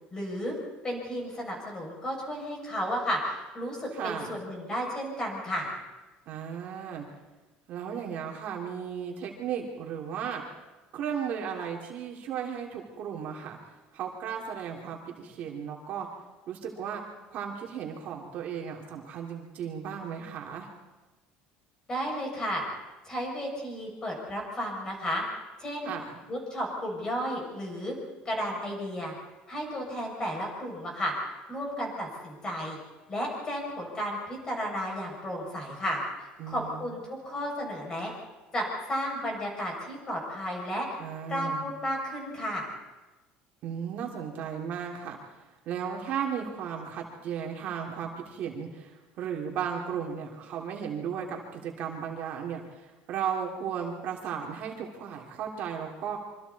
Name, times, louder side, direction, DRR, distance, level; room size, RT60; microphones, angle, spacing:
voice 1, 0.1-0.5 0.8-5.7 21.9-22.6 23.0-25.2 25.6-25.9 26.3-27.9 28.2-29.1 29.5-31.1 31.5-32.8 33.1-38.1 38.5-40.9 41.3-42.7, equal, 20° left, -1 dB, 6.6 m, -33 dB
voice 2, 3.9-4.4 6.3-7.1 7.7-10.4 10.9-13.6 13.9-16.1 16.5-17.0 17.3-20.7 25.8-26.1 36.4-36.9 41.0-41.7 43.6-56.2, right 7 dB, 50° right, 0 dB, 2.9 m, -35 dB
26.5 x 24.5 x 4.2 m, 1.1 s
cardioid pair, 160°, 3 cm